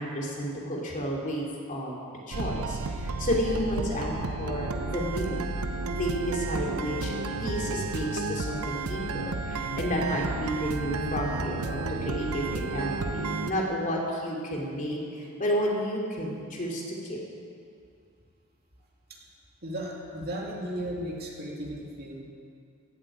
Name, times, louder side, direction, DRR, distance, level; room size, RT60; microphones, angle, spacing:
voice 1, 0.0-1.9 2.3-5.4 5.9-7.1 7.4-17.2, equal, 35° left, -2 dB, 2.8 m, -31 dB
sound 1, 2.3-13.5, right 3 dB, 85° right, 0.8 m, -32 dB
voice 2, 19.6-22.2, right 1 dB, 45° right, -2 dB, 2.5 m, -35 dB
16.0 x 8.6 x 8.7 m, 2.3 s
head